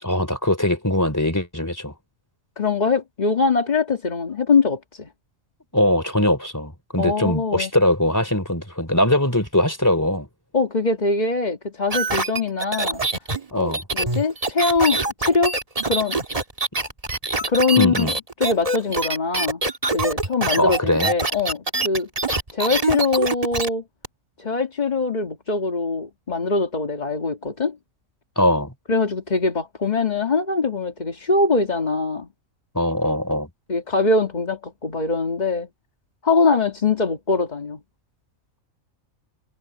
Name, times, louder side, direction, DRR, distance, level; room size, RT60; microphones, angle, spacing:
voice 1, 0.0-1.9 5.7-10.3 13.5-13.8 17.8-18.1 20.6-21.1 28.3-28.7 32.7-33.5, left 1 dB, 15° left, 3.3 m, -21 dB
voice 2, 2.6-5.1 7.0-7.7 10.5-13.0 13.5-15.5 15.9-16.2 17.5-18.1 18.4-19.6 19.9-22.1 22.5-23.8 24.4-27.8 28.9-32.3 33.7-35.7 36.2-37.8, left 4 dB, 30° left, 1.7 m, -22 dB
sound 1, 11.9-23.7 24.0-24.1, right 3 dB, 25° right, 1.7 m, -24 dB
omnidirectional pair, 1.4 m